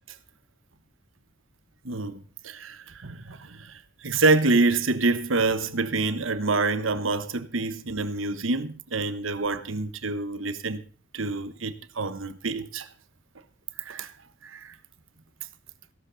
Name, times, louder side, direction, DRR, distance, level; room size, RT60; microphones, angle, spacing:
voice 1, 1.8-10.8 11.1-12.9 13.8-14.1 14.4-14.7, right 3 dB, 85° right, 1.2 m, -27 dB
16.0 x 12.0 x 4.0 m
head